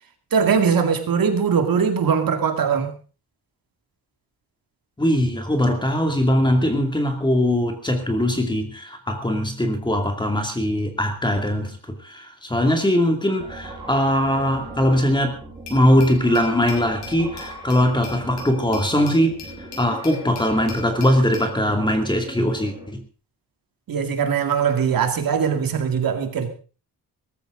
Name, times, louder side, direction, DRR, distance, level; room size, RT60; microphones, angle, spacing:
voice 1, 0.3-2.9 23.9-26.5, right 6 dB, 55° right, 2.3 m, -21 dB
voice 2, 5.0-15.4 15.7-19.4 19.8-23.0, equal, 10° left, 2.5 m, -21 dB
sound 1, 13.4-22.9, right 1 dB, 10° right, 4.7 m, -39 dB
Glass, 15.7-21.5, left 6 dB, 80° left, 6.9 m, -40 dB
18.5 x 14.5 x 3.8 m
wide cardioid pair, 170°, 40 cm